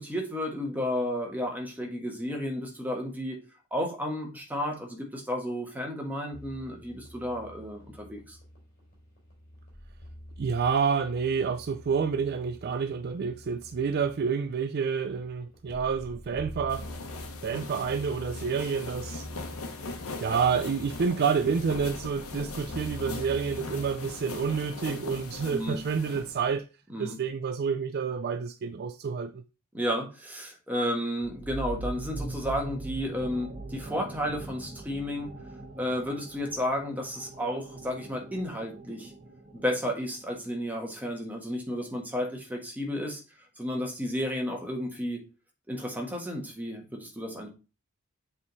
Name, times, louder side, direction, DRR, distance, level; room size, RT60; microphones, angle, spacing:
voice 1, 0.0-3.4 3.7-8.4 25.5-25.8 26.9-27.2 29.7-35.3 35.8-39.1 39.5-43.2 43.6-45.2 45.7-47.5, equal, 10° right, 1.5 m, -32 dB
sound 1, 6.3-23.9, equal, 40° left, 3.4 m, -46 dB
voice 2, 10.4-16.9 17.4-19.3 20.2-26.6 27.0-29.4, right 6 dB, 50° right, 0.4 m, -29 dB
sound 2, 16.7-26.6, left 3 dB, 85° left, 1.1 m, -40 dB
sound 3, 31.2-40.5, right 2 dB, 35° right, 1.5 m, -41 dB
7.4 x 3.6 x 4.0 m
head